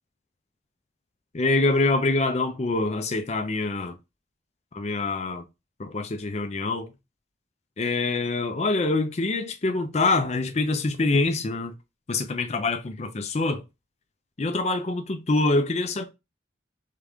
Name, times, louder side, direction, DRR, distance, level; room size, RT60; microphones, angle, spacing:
voice 1, 1.3-3.9 4.7-5.4 5.8-6.9 7.8-11.7 12.1-13.6 14.4-16.1, left 3 dB, 35° left, 0.5 m, -25 dB
3.7 x 3.5 x 3.5 m
head